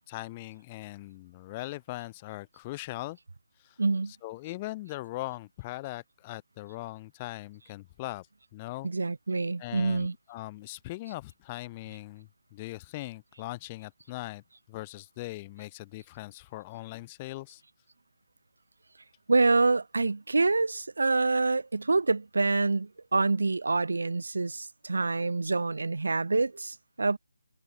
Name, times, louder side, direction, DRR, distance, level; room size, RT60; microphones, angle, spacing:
voice 1, 0.1-3.2 3.6-3.8 4.2-8.3 8.5-8.9 9.6-14.4 14.7-17.6, left 19 dB, 15° left, 0.4 m, -40 dB
voice 2, 3.8-4.1 8.8-10.1 19.3-27.2, right 3 dB, 70° right, 0.5 m, -26 dB
hypercardioid pair, 180°, 0 cm